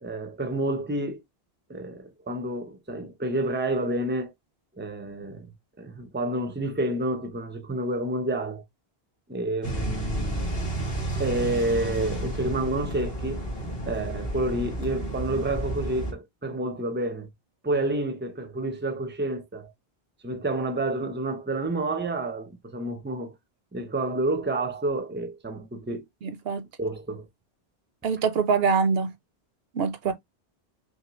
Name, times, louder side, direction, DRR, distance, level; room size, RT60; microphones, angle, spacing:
voice 1, 0.0-1.2 1.7-4.3 4.8-5.5 5.8-8.6 9.3-10.4 11.2-13.5 13.8-17.3 17.6-19.7 20.2-23.3 23.7-26.0 26.8-27.3 30.1-30.2, right 2 dB, 10° right, 0.7 m, -29 dB
sound 1, 9.6-16.1, right 1 dB, 65° left, 1.8 m, -31 dB
voice 2, 26.2-26.6 28.0-29.1 29.7-30.1, right 5 dB, 70° right, 0.9 m, -24 dB
5.7 x 2.1 x 3.0 m
omnidirectional pair, 1.0 m